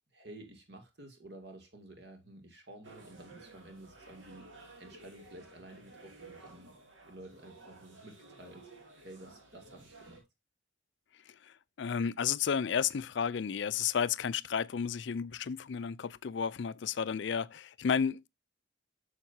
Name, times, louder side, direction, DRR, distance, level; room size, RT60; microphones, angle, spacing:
voice 1, 0.1-4.5 4.8-6.7 7.1-8.7 9.0-10.2, right 1 dB, 55° right, 2.4 m, -52 dB
sound 1, 2.8-10.2, right 2 dB, 75° right, 2.5 m, -54 dB
voice 2, 11.3-18.3, left 7 dB, 65° left, 0.4 m, -32 dB
9.0 x 6.6 x 2.7 m
head